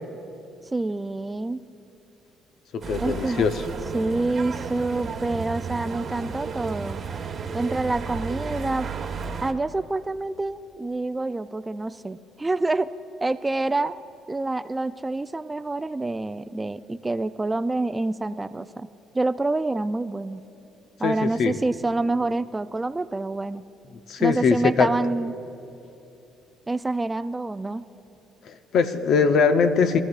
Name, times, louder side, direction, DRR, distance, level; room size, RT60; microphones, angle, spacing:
voice 1, 0.7-1.6 3.0-3.4 3.9-7.0 7.5-8.9 9.4-12.9 13.2-14.0 14.3-18.9 19.1-20.4 21.0-23.6 24.2-25.3 26.7-27.8, right 2 dB, 20° right, 12 dB, 0.4 m, -27 dB
voice 2, 2.7-3.6 21.0-21.6 24.1-24.9 28.4-30.0, left 5 dB, 65° left, 9 dB, 0.7 m, -21 dB
sound 1, 2.8-9.5, right 5 dB, 50° right, 1.2 m, -33 dB
23.0 x 14.5 x 2.4 m, 2.9 s
supercardioid pair, 80°, 0 cm